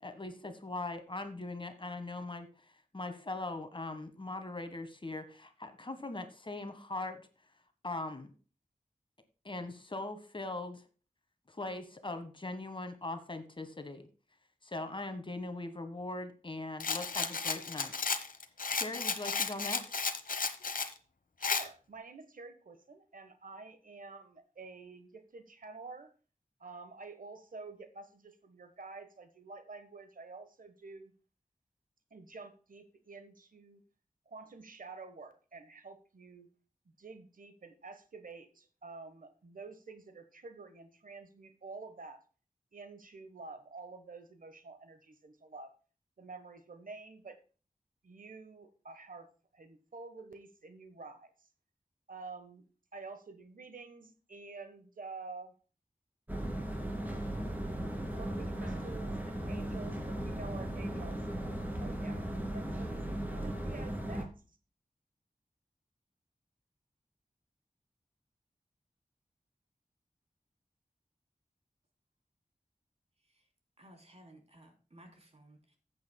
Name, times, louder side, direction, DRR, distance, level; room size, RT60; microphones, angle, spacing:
voice 1, 0.0-2.5 2.9-7.2 7.8-8.3 9.4-10.8 11.5-14.1 14.6-17.9 18.7-20.1, left 2 dB, 35° left, 8 dB, 1.5 m, -40 dB
Rattle, 16.8-20.9 21.4-21.7, left 5 dB, 85° left, 1.0 m, -33 dB
voice 2, 21.4-26.1 26.6-31.1 32.1-33.8 34.3-36.5 37.0-42.2 42.7-45.7 46.2-47.4 48.0-49.3 49.5-51.3 52.1-52.6 52.9-55.5 58.1-61.2 61.8-63.0 63.4-64.3, right 3 dB, 85° right, 9 dB, 1.2 m, -49 dB
sound 1, 56.3-64.3, right 1 dB, 15° right, 2.5 m, -37 dB
voice 3, 73.8-75.8, right 1 dB, 50° right, 3 dB, 3.2 m, -58 dB
14.5 x 8.4 x 2.2 m, 0.37 s
wide cardioid pair, 80°, 14 cm